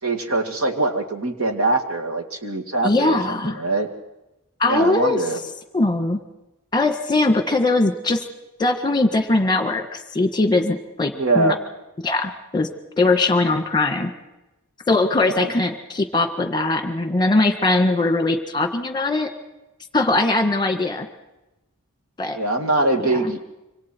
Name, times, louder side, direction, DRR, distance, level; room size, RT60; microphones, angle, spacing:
voice 1, 0.0-3.9 4.6-5.4 11.1-11.6 15.2-15.5 22.3-23.4, right 2 dB, 65° right, 3 dB, 2.4 m, -23 dB
voice 2, 2.8-3.6 4.6-5.2 5.7-6.2 6.7-8.2 8.6-11.5 12.0-12.7 13.0-14.1 14.9-19.3 19.9-21.1 22.2-22.4 23.2-23.3, left 2 dB, 20° left, 7 dB, 1.7 m, -20 dB
26.5 x 25.0 x 4.6 m, 0.96 s
head